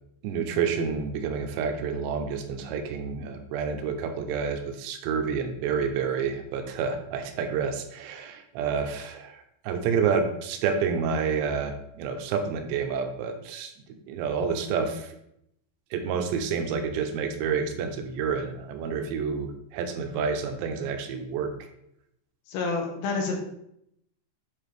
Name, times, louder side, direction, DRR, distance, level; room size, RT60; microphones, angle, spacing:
voice 1, 0.2-15.1 15.9-21.5, right 6 dB, 85° right, 5 dB, 2.9 m, -29 dB
voice 2, 22.5-23.4, left 4 dB, 75° left, 2 dB, 2.5 m, -28 dB
9.1 x 3.9 x 3.4 m, 0.77 s
omnidirectional pair, 5.1 m